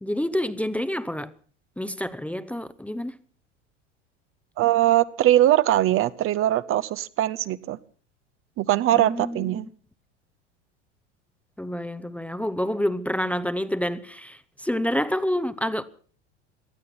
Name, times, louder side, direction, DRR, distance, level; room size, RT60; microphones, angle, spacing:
voice 1, 0.0-1.3 1.8-3.2 8.9-9.6 11.6-15.8, equal, 5° left, 0.7 m, -28 dB
voice 2, 4.6-7.8 8.6-9.7, right 13 dB, 35° right, 0.7 m, -21 dB
18.5 x 12.5 x 6.0 m
hypercardioid pair, 80°, 36 cm